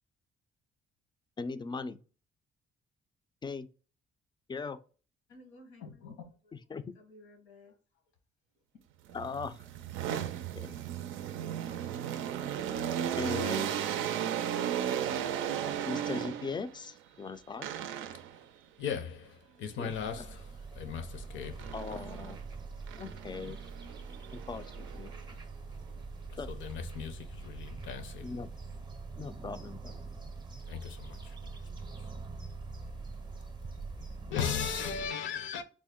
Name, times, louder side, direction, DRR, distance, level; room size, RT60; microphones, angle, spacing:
voice 1, 1.4-2.0 3.4-3.7 4.5-4.8 6.5-6.8 9.1-9.6 10.5-10.8 13.1-13.7 15.9-17.7 19.8-20.3 21.7-22.4 23.0-23.6 24.3-25.1 26.4-26.5 28.2-28.5 29.2-29.9, left 4 dB, 25° left, 0.3 m, -39 dB
voice 2, 5.3-7.7, left 4 dB, 90° left, 1.1 m, -52 dB
sound 1, 9.1-16.7 17.6-18.4 21.6-22.4 22.9-25.2, right 9 dB, 80° right, 0.4 m, -35 dB
voice 3, 18.8-19.3 19.6-20.2 20.8-21.5 26.7-27.2 27.4-28.2 30.7-30.8 31.1-31.2 34.3-35.6, left 7 dB, 70° left, 0.6 m, -36 dB
sound 2, 19.9-35.1, right 4 dB, 20° right, 0.6 m, -44 dB
3.5 x 2.1 x 3.6 m
cardioid pair, 90°, 20 cm